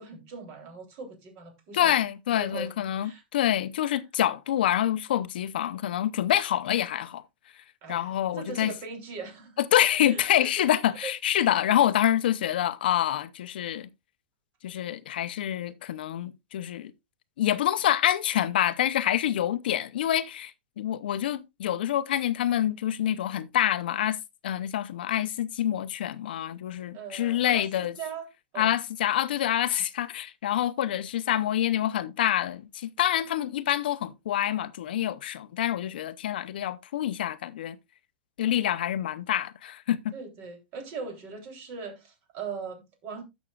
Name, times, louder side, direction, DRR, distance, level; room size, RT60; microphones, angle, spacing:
voice 1, 0.0-2.0 2.4-2.7 3.0-3.2 7.8-10.5 11.0-11.1 26.9-28.3 28.5-28.7 40.1-43.2, right 5 dB, 40° right, 3.3 m, -40 dB
voice 2, 1.7-7.2 7.5-8.7 9.6-13.9 14.6-16.9 17.4-24.2 24.4-28.0 28.6-37.8 38.4-40.1, left 11 dB, 75° left, 0.7 m, -27 dB
15.5 x 6.2 x 2.4 m
supercardioid pair, 145°, 5 cm